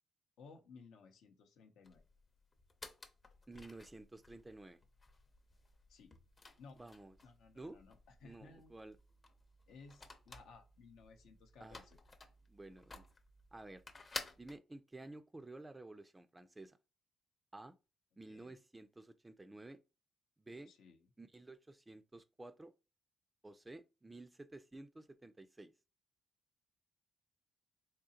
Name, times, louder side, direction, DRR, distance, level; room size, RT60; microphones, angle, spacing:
voice 1, 0.4-2.0 5.9-6.1 6.6-6.8 7.2-8.7 9.7-12.0 18.3-18.6 20.7-21.1, left 4 dB, 80° left, 0.6 m, -59 dB
sound 1, 1.8-14.6, left 3 dB, 30° left, 0.6 m, -54 dB
voice 2, 3.5-4.8 6.8-7.1 7.5-7.8 8.2-9.0 11.6-11.9 12.5-13.0 13.5-13.8 14.4-16.8 17.5-17.8 18.2-19.8 20.4-20.7 21.2-22.7 23.4-25.7, right 2 dB, 15° right, 0.3 m, -52 dB
3.7 x 2.9 x 2.8 m
cardioid pair, 90°, 0 cm